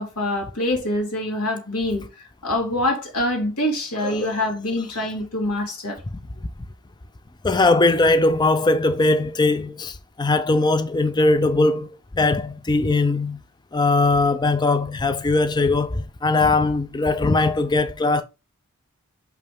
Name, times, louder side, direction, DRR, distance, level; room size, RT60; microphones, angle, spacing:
voice 1, 0.0-6.0, left 1 dB, 90° left, 2.5 m, -25 dB
voice 2, 7.4-13.4 13.7-18.2, left 2 dB, 20° left, 0.5 m, -20 dB
5.8 x 5.4 x 3.5 m
head